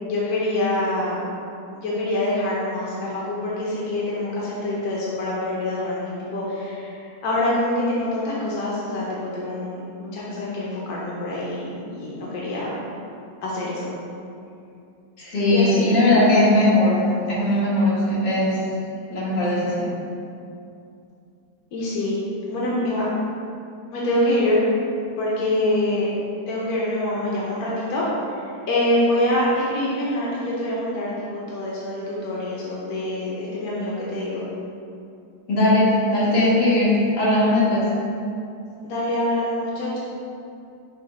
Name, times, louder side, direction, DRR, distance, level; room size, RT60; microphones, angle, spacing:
voice 1, 0.0-1.2 1.7-12.8 13.4-13.9 15.5-16.1 21.7-22.2 22.5-23.1 23.9-24.6 25.2-26.1 26.5-28.0 28.3-34.4 38.8-40.0, left 1 dB, 70° left, -6 dB, 1.4 m, -25 dB
voice 2, 15.2-18.6 19.1-19.9 35.5-37.8, left 1 dB, 90° left, -8 dB, 2.1 m, -19 dB
6.3 x 3.2 x 4.9 m, 2.6 s
omnidirectional pair, 1.7 m